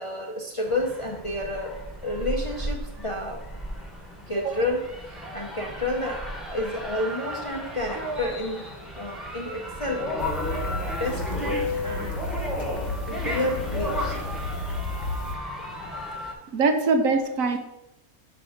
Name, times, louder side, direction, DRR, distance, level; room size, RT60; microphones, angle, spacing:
voice 1, 0.0-3.4 4.3-8.6 8.9-10.7 11.0-14.2, left 1 dB, 30° left, 1 dB, 0.6 m, -31 dB
sound 1, 0.6-16.3, equal, ahead, 1.0 m, -34 dB
sound 2, 7.1-8.4 10.5-12.2, left 2 dB, 40° right, 0.4 m, -34 dB
sound 3, 10.2-15.4, left 2 dB, 55° left, 0.9 m, -32 dB
voice 2, 16.5-17.6, right 4 dB, 70° right, 6 dB, 1.2 m, -22 dB
6.0 x 4.5 x 6.3 m, 0.87 s
omnidirectional pair, 1.5 m